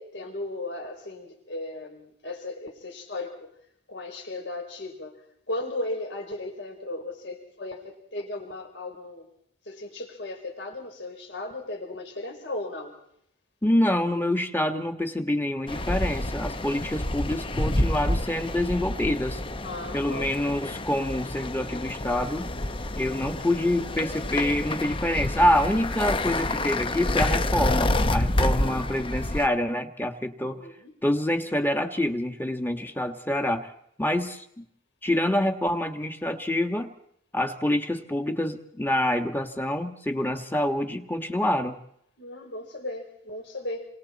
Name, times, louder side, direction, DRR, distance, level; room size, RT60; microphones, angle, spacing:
voice 1, 0.0-3.5 3.9-5.2 5.5-9.3 9.7-12.9 19.6-20.2 30.4-30.9 42.2-43.9, left 2 dB, 60° left, 4 dB, 4.2 m, -36 dB
voice 2, 13.6-19.4 19.9-22.5 22.9-30.6 31.0-33.7 34.0-34.6 35.0-36.9 37.3-41.8, left 1 dB, 10° left, 6 dB, 1.7 m, -26 dB
sound 1, 15.7-29.5, left 1 dB, 25° left, 0.9 m, -28 dB
28.0 x 26.0 x 4.3 m, 0.71 s
head